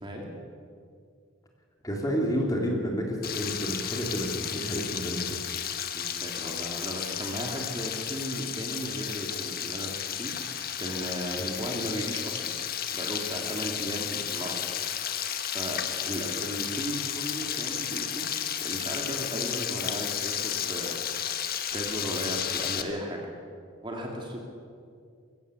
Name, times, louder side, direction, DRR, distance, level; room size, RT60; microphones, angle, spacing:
voice 1, 1.8-5.4 11.4-11.6, equal, 15° left, 0 dB, 3.2 m, -30 dB
Frying (food), 3.2-22.8, left 9 dB, 45° left, 1.3 m, -33 dB
voice 2, 5.9-9.9 10.1-10.3 10.8-12.5 12.9-14.8 15.5-18.3 18.6-21.0 21.7-23.2 23.8-24.4, equal, 20° right, 1 dB, 2.5 m, -35 dB
22.0 x 16.0 x 8.3 m, 2.3 s
head